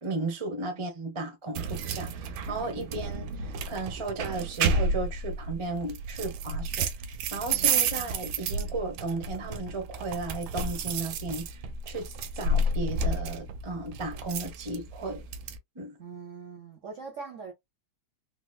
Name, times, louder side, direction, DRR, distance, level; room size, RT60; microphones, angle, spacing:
voice 1, 0.0-6.9 7.3-11.6 11.8-15.3 15.7-16.0, right 3 dB, 35° right, 0.5 m, -35 dB
sound 1, 1.6-15.6, right 3 dB, 90° right, 1.4 m, -31 dB
voice 2, 16.0-17.5, right 5 dB, 60° right, 0.8 m, -42 dB
3.9 x 2.2 x 2.4 m
omnidirectional pair, 2.2 m